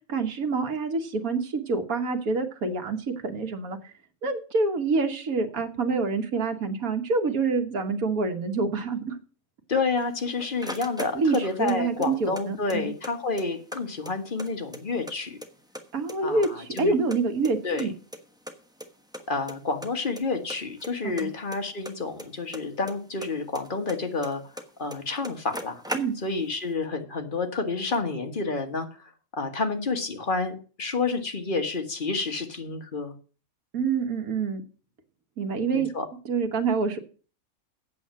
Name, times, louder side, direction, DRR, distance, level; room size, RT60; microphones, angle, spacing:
voice 1, 0.1-3.9 4.2-9.2 11.1-12.9 15.9-17.9 21.0-21.3 25.9-26.2 33.7-34.6 35.4-35.9 36.3-37.0, right 4 dB, 85° right, 5 dB, 1.9 m, -27 dB
voice 2, 9.7-15.4 16.2-16.9 17.6-17.9 19.3-24.4 24.8-25.8 26.2-33.1 35.7-36.0, left 3 dB, 35° left, 6 dB, 1.6 m, -29 dB
sound 1, 10.0-11.8 12.0-13.1 13.4-13.5 13.7-15.1 15.4-16.2 16.4-17.9 18.1-18.2 18.5-18.6 18.8-18.9 19.1-19.5 19.8-20.2 20.5-22.9 23.2-24.6 24.9-25.0 25.2-26.5, equal, 5° right, 1.0 m, -38 dB
8.5 x 7.1 x 7.5 m, 0.38 s
omnidirectional pair, 1.5 m